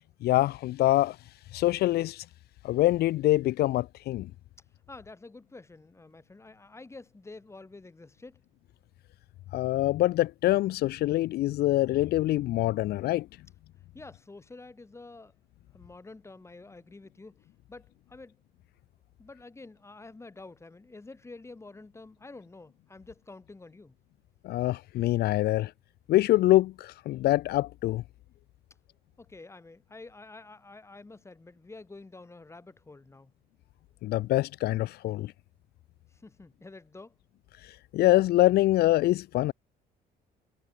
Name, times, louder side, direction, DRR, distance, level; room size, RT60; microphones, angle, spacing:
voice 1, 0.2-1.2 1.5-2.2 2.6-4.3 9.5-13.3 24.4-25.7 26.1-28.0 34.0-35.3 37.6-39.5, left 16 dB, 70° left, 0.7 m, -25 dB
voice 2, 4.9-8.4 13.9-15.3 15.7-18.4 19.2-23.9 29.2-33.3 36.1-37.2, left 3 dB, 15° left, 4.7 m, -48 dB
cardioid pair, 110°, 17 cm